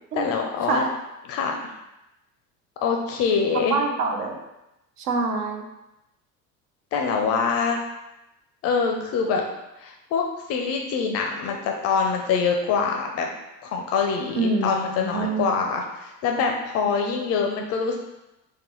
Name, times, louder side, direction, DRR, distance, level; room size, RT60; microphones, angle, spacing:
voice 1, 0.1-0.8 1.3-1.7 2.8-3.8 6.9-7.8 8.6-9.4 9.8-10.2 10.5-13.3 13.6-18.0, left 5 dB, 35° left, 2 dB, 0.4 m, -24 dB
voice 2, 3.7-4.4 5.0-5.6 14.4-15.6, right 3 dB, 70° right, 3 dB, 0.7 m, -26 dB
3.8 x 2.2 x 3.0 m, 0.93 s
figure-of-eight pair, 70°, 49 cm